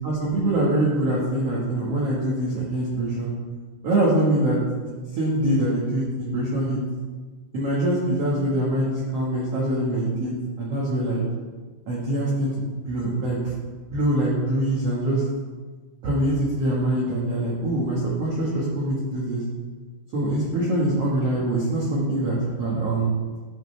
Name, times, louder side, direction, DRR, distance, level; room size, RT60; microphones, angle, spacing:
voice 1, 0.0-3.3 3.8-6.8 7.5-10.3 10.6-11.2 11.9-13.4 13.9-15.2 16.0-19.4 20.1-23.1, right 1 dB, 70° right, -7 dB, 1.5 m, -24 dB
14.0 x 5.6 x 3.3 m, 1.4 s
omnidirectional pair, 5.1 m